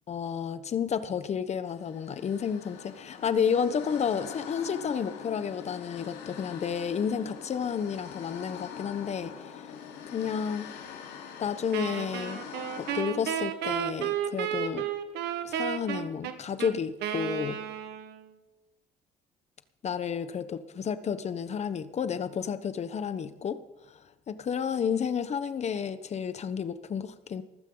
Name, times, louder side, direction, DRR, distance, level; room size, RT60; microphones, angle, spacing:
voice 1, 0.1-9.3 10.1-10.8 11.4-12.4 12.8-14.9 15.4-17.6 19.8-23.6 24.3-27.4, left 7 dB, 40° left, 12 dB, 1.1 m, -31 dB
sound 1, 1.7-13.0, left 8 dB, 90° left, 3.5 m, -43 dB
Wind instrument woodwind instrument, 11.7-18.3, right 10 dB, 80° right, 1.5 m, -33 dB
19.5 x 14.5 x 4.0 m, 1.0 s
cardioid pair, 110°, 17 cm